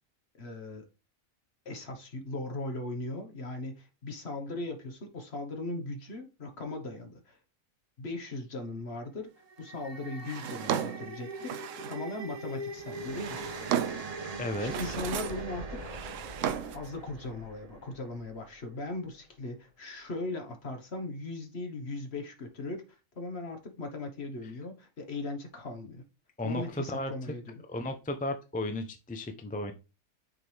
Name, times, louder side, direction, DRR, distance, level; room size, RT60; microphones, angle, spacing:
voice 1, 0.4-0.8 1.6-7.4 8.0-9.3 9.6-13.5 14.6-16.1 16.7-22.8 23.1-26.0 26.4-27.6, left 2 dB, 50° left, 1.5 m, -38 dB
sound 1, 9.3-18.6, right 2 dB, 35° right, 0.7 m, -42 dB
Drawer open or close, 10.2-12.1 12.9-14.2 14.5-15.5 15.8-16.9, right 10 dB, 70° right, 0.9 m, -35 dB
voice 2, 14.3-14.7 26.4-27.1 27.7-29.7, left 1 dB, 10° left, 0.4 m, -34 dB
6.6 x 4.6 x 3.3 m
omnidirectional pair, 1.4 m